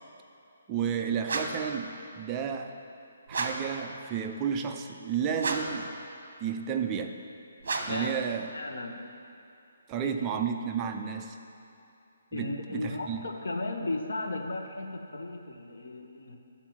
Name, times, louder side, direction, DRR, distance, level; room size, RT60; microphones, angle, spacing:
voice 1, 0.7-2.8 3.3-5.9 6.4-7.2 7.9-8.5 9.9-11.4 12.3-13.2, right 7 dB, 15° right, 4 dB, 0.3 m, -32 dB
sound 1, 1.2-1.7 3.3-3.8 5.4-5.9 7.6-8.1, right 3 dB, 55° right, 1.0 m, -32 dB
voice 2, 7.9-8.2 8.5-9.0 10.0-10.1 12.3-16.4, left 2 dB, 80° left, 3 dB, 1.1 m, -35 dB
12.0 x 4.5 x 7.2 m, 2.6 s
hypercardioid pair, 175°, 0 cm